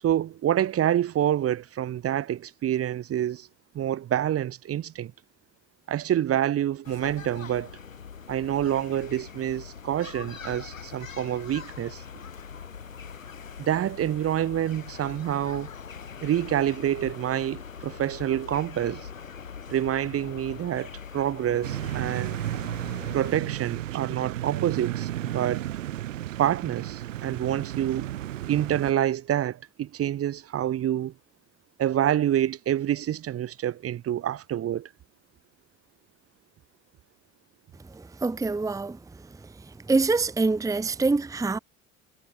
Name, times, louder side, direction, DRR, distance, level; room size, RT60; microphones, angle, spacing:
voice 1, 0.0-3.5 3.7-5.1 5.9-7.7 8.3-12.0 13.6-15.7 16.2-19.1 19.7-20.9 21.1-22.4 23.1-25.6 26.4-28.1 28.5-31.1 31.8-34.9, right 11 dB, 35° right, 1.1 m, -27 dB
sound 1, 6.8-23.4, left 6 dB, 90° left, 3.6 m, -42 dB
sound 2, 21.6-28.9, right 13 dB, 75° right, 3.5 m, -33 dB
voice 2, 37.9-39.0 39.3-41.6, right 3 dB, 10° right, 0.9 m, -26 dB
figure-of-eight pair, 60°, 38 cm